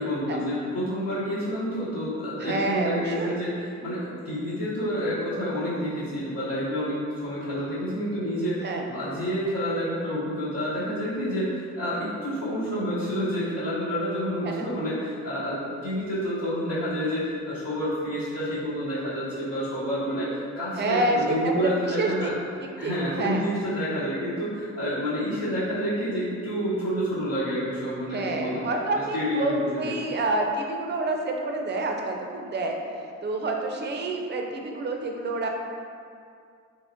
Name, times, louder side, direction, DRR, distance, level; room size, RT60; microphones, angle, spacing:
voice 1, 0.0-22.3 22.8-28.6 28.9-30.1, equal, 70° left, -12 dB, 1.1 m, -29 dB
voice 2, 2.4-3.4 8.6-8.8 14.4-14.7 20.8-22.3 22.6-23.5 28.1-32.8 33.2-35.5, right 2 dB, 35° right, 2 dB, 0.5 m, -28 dB
3.5 x 3.0 x 2.6 m, 2.3 s
cardioid pair, 90°, 30 cm